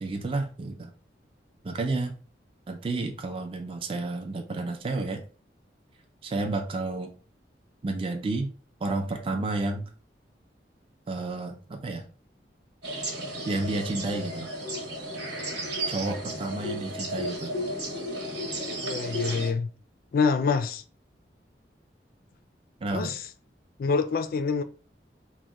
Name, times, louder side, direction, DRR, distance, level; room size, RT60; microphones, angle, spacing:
voice 1, 0.0-0.9 1.6-2.2 2.7-5.2 6.2-7.1 7.8-8.5 8.8-9.9 11.1-12.1 13.5-14.5 15.9-17.5 22.8-23.2, right 2 dB, 30° right, 0.4 m, -31 dB
sound 1, 12.8-19.5, right 1 dB, 90° right, 1.1 m, -33 dB
voice 2, 18.8-19.7 20.1-20.8 22.9-23.2 23.8-24.6, left 5 dB, 55° left, 0.3 m, -26 dB
2.8 x 2.1 x 3.5 m
head